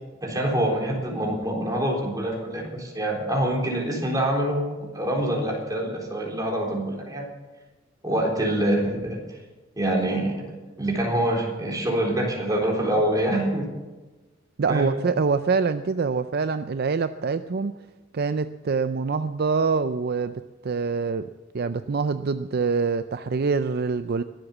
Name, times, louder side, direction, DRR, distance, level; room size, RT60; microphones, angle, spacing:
voice 1, 0.2-7.3 8.0-9.4 9.8-13.7 14.7-15.0, right 1 dB, 20° right, 0 dB, 3.9 m, -25 dB
voice 2, 14.6-17.7 18.1-21.3 21.5-24.2, right 4 dB, 55° right, 11 dB, 0.5 m, -25 dB
22.5 x 8.0 x 7.2 m, 1.2 s
head